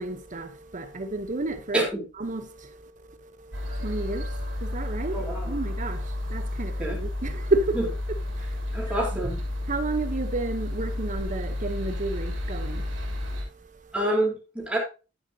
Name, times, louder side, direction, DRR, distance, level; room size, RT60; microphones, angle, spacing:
voice 1, 0.0-1.8 2.2-7.8 8.3-13.9, right 2 dB, 40° right, 0.9 m, -32 dB
voice 2, 1.7-2.0 5.1-5.6 6.8-7.0 7.8-7.9 8.7-9.4 13.9-14.8, right 1 dB, 5° right, 3.7 m, -27 dB
sound 1, 3.5-13.4, left 1 dB, 75° right, 3.2 m, -31 dB
10.5 x 9.4 x 2.8 m
head